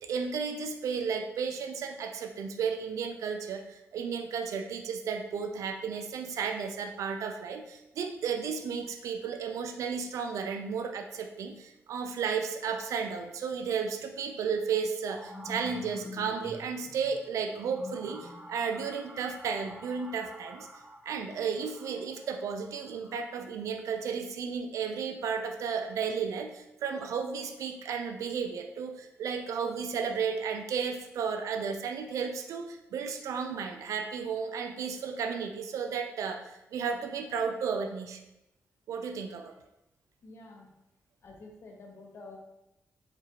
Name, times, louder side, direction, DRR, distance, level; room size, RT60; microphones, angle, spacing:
voice 1, 0.0-20.7 21.1-38.2 38.9-39.5, right 6 dB, 85° right, 5 dB, 0.3 m, -33 dB
sound 1, 14.6-23.2, left 1 dB, 10° right, 1.2 m, -47 dB
voice 2, 40.2-40.7 41.2-42.4, left 3 dB, 50° left, 0 dB, 0.7 m, -48 dB
4.4 x 2.5 x 2.8 m, 0.88 s
wide cardioid pair, 125°, 5 cm